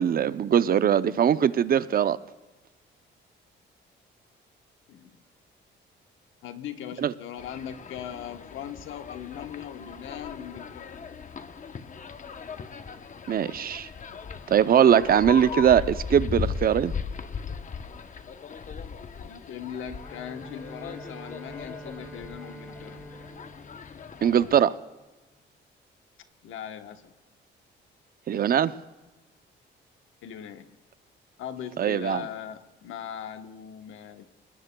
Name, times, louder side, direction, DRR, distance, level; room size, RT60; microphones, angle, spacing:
voice 1, 0.0-2.2 7.0-7.1 13.3-13.9 14.5-16.9 24.2-24.7 28.3-28.7 31.8-32.2, right 9 dB, 50° right, 0.6 m, -21 dB
voice 2, 4.9-5.2 6.4-10.9 19.2-23.1 26.4-27.1 30.2-30.7 31.4-34.3, left 9 dB, 85° left, 1.1 m, -39 dB
sound 1, 7.4-24.6, left 6 dB, 40° left, 0.9 m, -38 dB
Bowed string instrument, 20.0-25.1, right 1 dB, 5° left, 1.9 m, -46 dB
25.0 x 20.0 x 2.3 m
cardioid pair, 90°, 20 cm